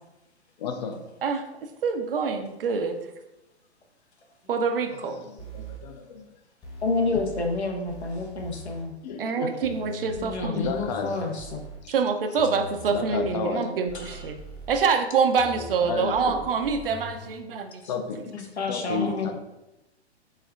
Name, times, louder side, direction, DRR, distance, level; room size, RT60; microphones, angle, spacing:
voice 1, 0.6-1.0 5.0-6.3 7.1-7.2 9.0-9.6 10.5-11.2 11.8-11.9 12.9-13.8 15.5-16.5 17.9-18.2 18.7-19.3, left 5 dB, 40° left, 7 dB, 0.5 m, -32 dB
voice 2, 1.8-3.0 4.5-5.2 9.2-10.6 11.9-14.4 14.7-17.8, right 5 dB, 55° right, 6 dB, 0.5 m, -26 dB
sound 1, 5.4-5.8 6.6-7.6 7.9-8.8 9.6-11.8 12.4-13.4 13.9-14.8 15.4-17.4, right 1 dB, 10° left, 0.9 m, -41 dB
voice 3, 6.8-8.9 10.2-11.6 13.9-14.2 18.3-19.3, left 3 dB, 75° left, 2 dB, 0.9 m, -29 dB
4.3 x 3.4 x 2.4 m, 0.96 s
figure-of-eight pair, 115°, 34 cm